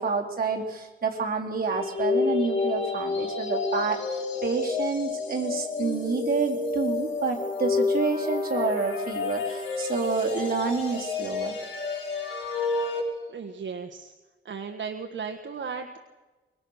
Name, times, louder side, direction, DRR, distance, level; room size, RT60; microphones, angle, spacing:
voice 1, 0.0-11.6, right 5 dB, 45° right, 0 dB, 4.0 m, -28 dB
sound 1, 1.7-13.0, left 4 dB, 75° left, 7.4 m, -29 dB
voice 2, 13.3-14.1 14.4-16.0, right 5 dB, 65° right, 4 dB, 1.5 m, -35 dB
24.5 x 23.5 x 6.6 m, 1.2 s
wide cardioid pair, 160°, 21 cm